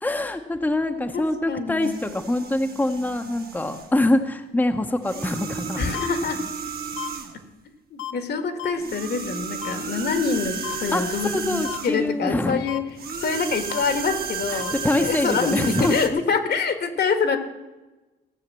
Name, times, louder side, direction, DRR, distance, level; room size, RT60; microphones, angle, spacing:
voice 1, 0.0-5.9 10.9-12.6 14.5-16.1, left 1 dB, 10° left, 5 dB, 0.9 m, -24 dB
voice 2, 0.9-2.0 5.8-6.4 7.9-12.8 13.2-14.7 15.0-17.4, left 5 dB, 55° left, 8 dB, 1.5 m, -26 dB
sound 1, 1.8-4.0 5.0-7.4 8.7-12.1 12.9-16.1, right 6 dB, 50° right, 1.6 m, -33 dB
sound 2, 5.9-6.1 7.0-7.1 8.0-8.1 8.6-8.7 9.6-9.7 10.6-10.8 11.6-11.8 12.7-12.8 13.7-13.8 14.6-14.7, left 13 dB, 85° left, 0.8 m, -32 dB
16.5 x 6.6 x 7.5 m, 1.1 s
cardioid pair, 90°, 20 cm